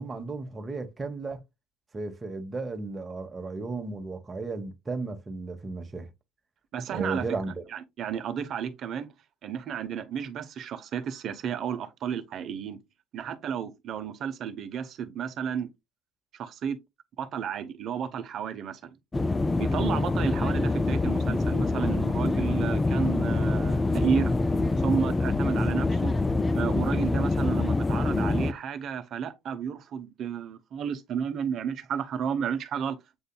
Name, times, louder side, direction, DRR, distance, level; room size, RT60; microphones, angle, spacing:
voice 1, 0.0-1.4 1.9-6.1 6.9-7.6, right 3 dB, 25° right, 1.1 m, -34 dB
voice 2, 6.7-7.2 7.7-9.1 9.4-12.8 13.1-15.7 16.3-16.8 17.2-18.9 19.6-24.3 24.8-26.1 26.5-33.2, right 7 dB, 55° right, 0.8 m, -32 dB
sound 1, 19.1-28.5, left 2 dB, 20° left, 0.3 m, -25 dB
7.8 x 2.6 x 2.2 m
hypercardioid pair, 75°, 0 cm